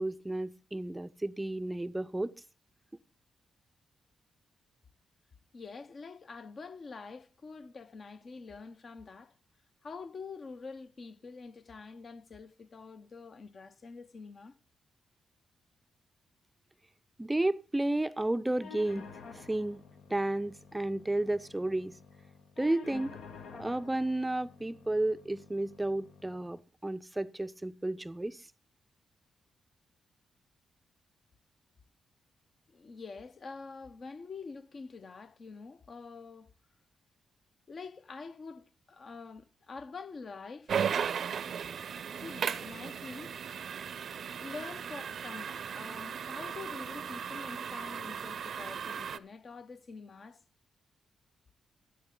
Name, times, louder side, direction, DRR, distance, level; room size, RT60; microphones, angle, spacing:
voice 1, 0.0-2.3 17.2-19.1 19.3-19.8 20.1-21.9 22.6-23.1 23.5-28.5, right 1 dB, 15° right, 0.4 m, -32 dB
voice 2, 5.5-9.4 9.8-14.5 32.7-36.5 37.7-40.7 42.2-43.3 44.4-50.4, left 4 dB, 50° left, 0.8 m, -46 dB
sound 1, 18.6-26.6, left 5 dB, 85° left, 1.3 m, -51 dB
sound 2, 40.7-49.2, right 7 dB, 65° right, 0.5 m, -36 dB
14.0 x 8.4 x 3.8 m
cardioid pair, 60°, 0 cm